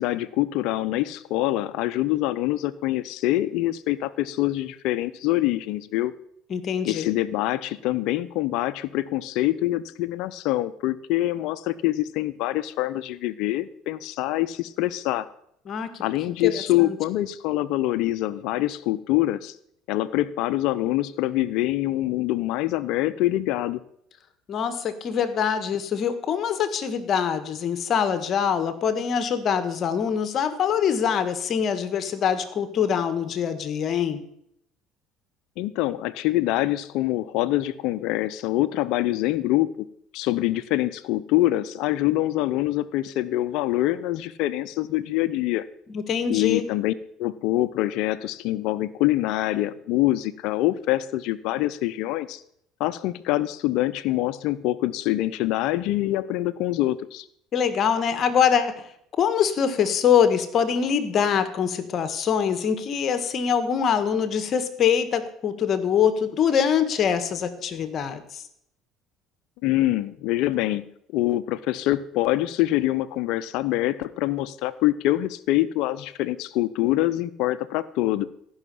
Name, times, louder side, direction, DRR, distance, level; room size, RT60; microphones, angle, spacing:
voice 1, 0.0-6.1 6.8-15.3 16.0-19.5 19.9-23.8 35.6-39.7 40.1-45.6 46.3-46.9 47.2-52.4 52.8-57.2 69.6-70.9 71.1-78.3, left 15 dB, 70° left, 16 dB, 0.7 m, -25 dB
voice 2, 6.5-7.1 15.7-16.0 16.4-16.5 16.8-17.0 24.5-34.2 45.9-46.6 57.5-58.8 59.2-68.4, left 7 dB, 50° left, 11 dB, 1.6 m, -24 dB
14.5 x 6.4 x 8.5 m, 0.71 s
supercardioid pair, 75°, 0 cm